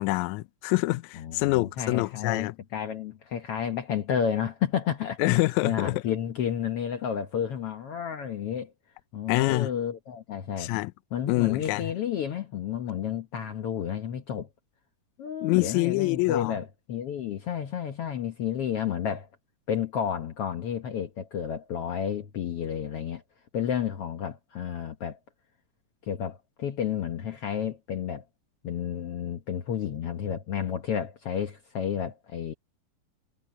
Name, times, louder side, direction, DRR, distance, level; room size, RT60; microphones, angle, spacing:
voice 1, 0.0-2.5 5.2-5.9 9.3-9.7 10.6-10.9 11.3-11.9 15.4-16.6, left 21 dB, 90° left, 1.6 m, -26 dB
voice 2, 1.2-5.2 5.6-8.7 9.1-10.7 11.1-14.5 15.2-19.3 19.7-23.2 23.5-25.2 26.0-28.2 28.6-32.5, left 8 dB, 65° left, 1.5 m, -31 dB
omnidirectional pair, 3.9 m